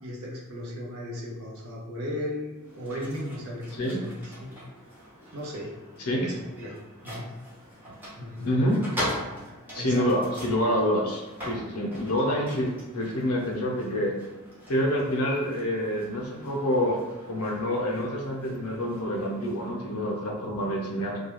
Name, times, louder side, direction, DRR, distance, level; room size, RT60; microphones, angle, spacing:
voice 1, 0.0-4.5 5.3-5.7 6.2-6.8 7.0-7.2 8.1-8.5 9.7-10.0, left 1 dB, 75° right, -4 dB, 0.7 m, -36 dB
sound 1, 2.6-19.7, equal, 10° right, 0.7 m, -42 dB
voice 2, 8.4-8.8 9.7-14.1 14.7-17.0 17.3-21.2, equal, 90° left, -1 dB, 0.7 m, -27 dB
2.3 x 2.2 x 3.0 m, 1.1 s
head